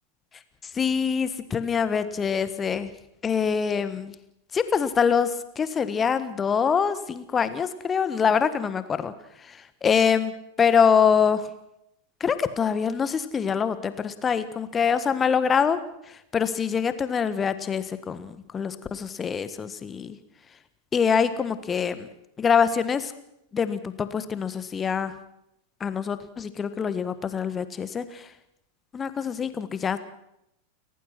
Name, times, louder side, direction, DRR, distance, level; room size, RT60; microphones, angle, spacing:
voice 1, 0.7-2.9 3.2-4.1 4.5-9.1 9.5-10.3 10.6-11.5 12.2-15.8 16.3-20.2 20.9-22.1 22.4-23.1 23.5-25.1 25.8-28.3 28.9-30.0, left 6 dB, 20° left, 13 dB, 1.5 m, -24 dB
30.0 x 15.0 x 6.0 m, 0.80 s
figure-of-eight pair, 90°, 0 cm